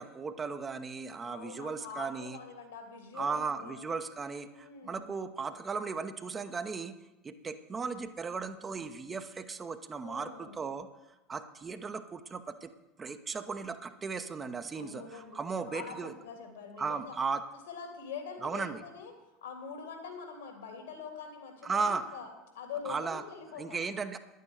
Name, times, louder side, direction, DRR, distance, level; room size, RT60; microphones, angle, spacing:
voice 1, 0.0-2.4 3.1-6.9 7.2-10.9 11.3-12.7 13.0-16.1 16.8-17.4 18.4-18.8 21.6-22.1 22.8-23.2 23.6-24.2, right 5 dB, 25° right, 8 dB, 1.0 m, -36 dB
voice 2, 1.2-3.8 4.5-5.1 10.0-10.5 14.7-15.4 15.7-17.1 17.7-19.1 19.4-23.9, left 6 dB, 70° left, 3 dB, 3.0 m, -44 dB
10.5 x 9.5 x 7.5 m, 1.0 s
figure-of-eight pair, 70°, 0 cm